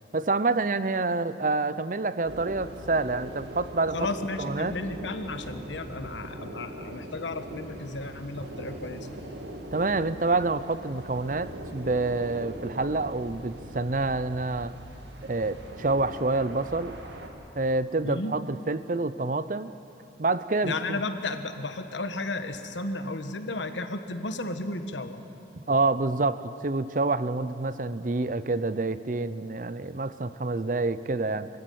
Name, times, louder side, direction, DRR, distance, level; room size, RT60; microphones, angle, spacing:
voice 1, 0.1-4.0 4.4-4.7 9.7-14.7 15.2-17.0 17.6-19.7 20.2-21.0 25.5-31.5, right 3 dB, 45° right, 14 dB, 0.6 m, -27 dB
sound 1, 2.2-17.3, right 1 dB, 70° right, 2.4 m, -41 dB
voice 2, 3.9-9.1 18.0-18.4 20.6-25.2, left 2 dB, 85° left, 8 dB, 1.4 m, -33 dB
24.5 x 15.0 x 9.3 m, 2.8 s
head